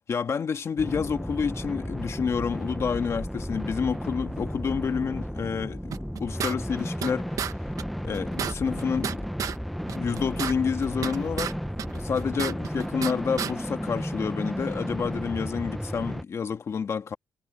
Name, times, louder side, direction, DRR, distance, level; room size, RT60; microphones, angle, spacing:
voice 1, 0.1-5.9 6.2-7.3 8.0-9.3 9.9-11.6 11.9-17.2, left 6 dB, 50° left, 1.9 m, -29 dB
sound 1, 0.8-16.2, equal, ahead, 0.9 m, -33 dB
sound 2, 5.9-7.1 7.4-7.5 7.8-7.9 8.1-9.6 9.9-11.5 11.8-13.1 13.4-13.5, right 8 dB, 70° right, 1.3 m, -32 dB
cardioid pair, 120°, 6 cm